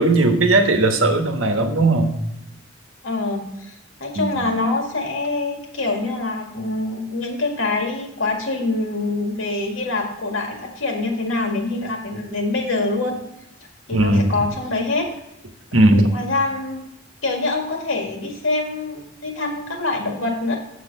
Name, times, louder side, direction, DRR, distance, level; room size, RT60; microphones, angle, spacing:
voice 1, 0.0-2.1 4.1-4.5 13.9-14.3 15.7-16.1, right 2 dB, 75° right, 5 dB, 1.2 m, -17 dB
voice 2, 3.0-3.7 4.0-13.2 13.9-15.1 16.1-16.8 17.2-20.6, left 2 dB, 75° left, 2 dB, 2.0 m, -25 dB
6.9 x 6.4 x 5.3 m, 0.85 s
head